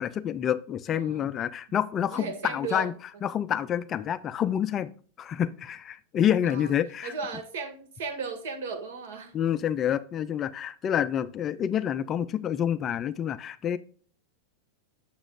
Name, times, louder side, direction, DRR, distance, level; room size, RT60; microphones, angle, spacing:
voice 1, 0.0-2.9 3.2-4.9 5.2-7.1 9.3-13.8, left 9 dB, 20° left, 14 dB, 0.3 m, -28 dB
voice 2, 0.9-1.3 2.1-2.9 6.4-6.7 7.0-9.3, right 4 dB, 70° right, 6 dB, 2.0 m, -36 dB
7.3 x 7.1 x 2.5 m, 0.42 s
supercardioid pair, 165°, 0 cm